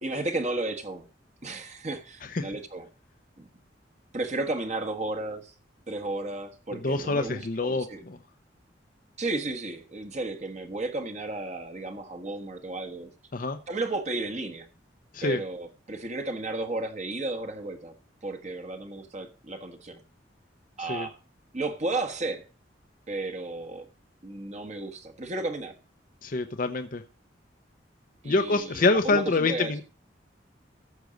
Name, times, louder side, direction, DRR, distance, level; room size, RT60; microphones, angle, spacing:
voice 1, 0.0-1.0 1.4-2.9 3.4-3.5 4.1-5.5 5.9-8.0 9.2-13.1 13.7-14.7 15.2-17.9 18.2-20.0 20.8-21.2 21.5-22.4 23.1-23.9 24.2-25.7 28.2-29.8, right 2 dB, 40° right, 6 dB, 1.3 m, -33 dB
voice 2, 6.7-8.2 13.3-13.6 15.1-15.4 20.8-21.1 26.2-27.0 28.2-29.8, left 3 dB, 50° left, 7 dB, 0.7 m, -26 dB
14.5 x 6.2 x 5.2 m, 0.36 s
head